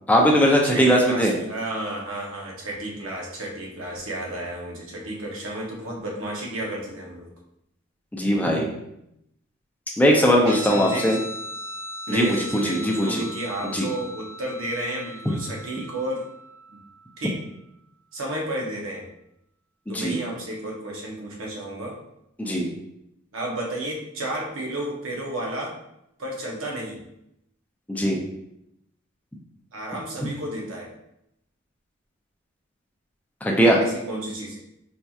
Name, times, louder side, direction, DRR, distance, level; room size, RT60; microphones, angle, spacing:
voice 1, 0.1-1.3 8.1-8.7 10.0-11.2 12.1-12.4 12.7-13.1 13.7-13.9 15.3-15.4 19.9-20.2 22.4-22.7 27.9-28.2 33.4-33.8, equal, 10° left, -1 dB, 0.5 m, -19 dB
voice 2, 0.6-7.3 10.5-11.0 12.1-16.3 16.7-16.8 17.2-17.4 18.1-19.0 19.9-22.0 23.3-25.8 26.2-27.0 29.7-30.9 33.8-34.6, right 1 dB, 90° right, -2 dB, 0.9 m, -32 dB
Guitar, 10.4-17.4, equal, 50° right, 1.0 m, -38 dB
4.3 x 2.8 x 2.3 m, 0.80 s
head